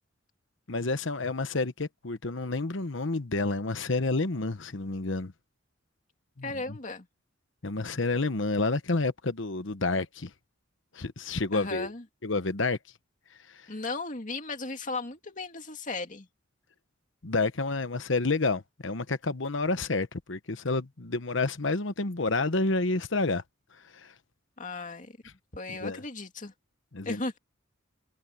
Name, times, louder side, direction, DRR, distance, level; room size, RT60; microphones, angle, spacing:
voice 1, 0.7-5.3 6.4-6.8 7.6-10.3 10.9-11.9 12.2-12.8 13.5-13.6 17.2-23.4 23.9-24.1 25.7-26.0 26.9-27.2, left 3 dB, 65° left, 1.1 m, -29 dB
voice 2, 6.4-7.1 11.5-12.0 13.7-16.3 24.6-25.2 25.5-26.5 27.0-27.4, left 3 dB, 40° left, 2.4 m, -36 dB
head